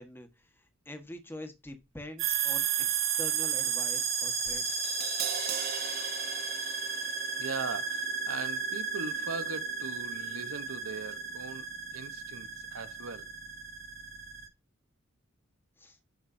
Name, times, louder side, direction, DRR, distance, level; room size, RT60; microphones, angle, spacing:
voice 1, 0.0-4.9 15.8-16.0, left 1 dB, 10° left, 1.4 m, -45 dB
sound 1, 2.2-14.5, right 6 dB, 65° right, 2.3 m, -33 dB
Crash cymbal, 4.7-10.8 11.1-11.2, right 11 dB, 45° right, 0.5 m, -42 dB
voice 2, 7.4-13.3, right 4 dB, 85° right, 1.0 m, -40 dB
9.9 x 6.3 x 2.7 m
head